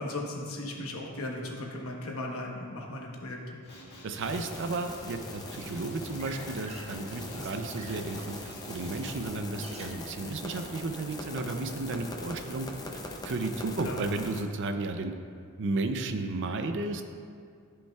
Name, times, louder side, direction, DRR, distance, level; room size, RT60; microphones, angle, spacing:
voice 1, 0.0-3.6 7.3-7.5 13.8-14.0, left 1 dB, 70° left, 0 dB, 1.1 m, -37 dB
Male speech man speaking, 3.6-9.3, left 1 dB, 50° left, 1.9 m, -48 dB
voice 2, 4.0-12.7 13.2-15.1 15.6-17.0, right 3 dB, 60° right, 7 dB, 0.5 m, -33 dB
sound 1, 4.2-14.4, left 1 dB, 20° left, 0.5 m, -42 dB
sound 2, 5.5-11.1, right 3 dB, 30° right, 0.7 m, -51 dB
13.5 x 5.4 x 2.3 m, 2.3 s
head